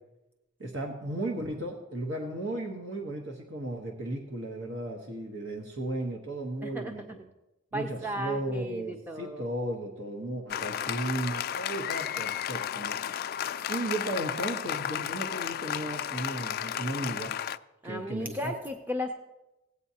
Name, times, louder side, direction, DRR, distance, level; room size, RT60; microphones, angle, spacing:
voice 1, 0.6-7.2 7.7-12.9 13.7-17.3 17.8-18.5, right 1 dB, 80° right, 0 dB, 1.1 m, -35 dB
voice 2, 6.6-6.9 7.7-9.4 17.8-19.1, equal, 10° right, 4 dB, 0.5 m, -35 dB
Applause, 10.5-17.6, left 9 dB, 50° left, 0.3 m, -33 dB
17.0 x 8.3 x 2.8 m, 0.97 s
head